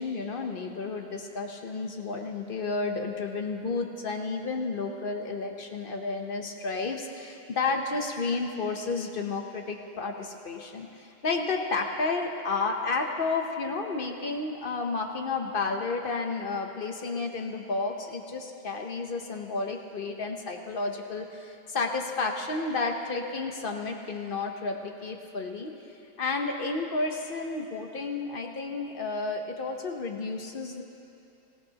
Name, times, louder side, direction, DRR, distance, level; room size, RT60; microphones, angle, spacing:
voice 1, 0.0-25.7 26.2-30.8, left 3 dB, 45° left, 3 dB, 0.8 m, -31 dB
19.5 x 15.5 x 2.9 m, 2.7 s
omnidirectional pair, 1.7 m